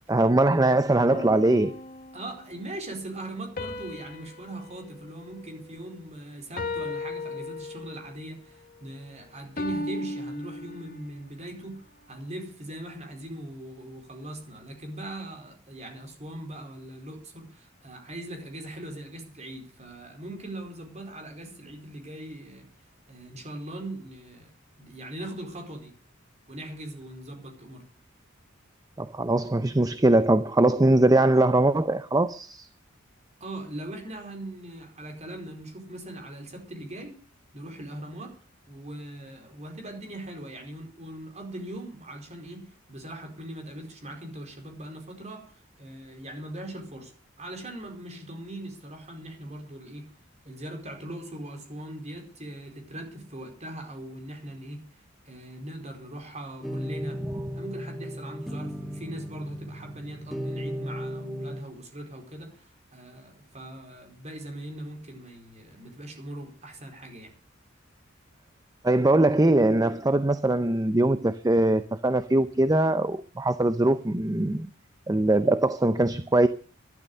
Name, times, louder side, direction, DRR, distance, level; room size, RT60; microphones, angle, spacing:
voice 1, 0.1-1.8 29.0-32.7 68.8-74.7 75.1-76.5, right 2 dB, 20° right, 0.6 m, -22 dB
sound 1, 1.1-2.5 3.6-6.0 6.6-8.2 9.6-11.2, left 2 dB, 45° left, 1.7 m, -36 dB
voice 2, 2.1-22.7 23.1-25.9 26.5-27.9 33.4-37.2 37.5-38.4 38.6-47.1 47.4-50.1 50.4-57.2 57.5-67.3, right 1 dB, 35° right, 4.6 m, -40 dB
sound 2, 56.6-61.6, equal, ahead, 1.5 m, -35 dB
12.0 x 12.0 x 6.6 m
head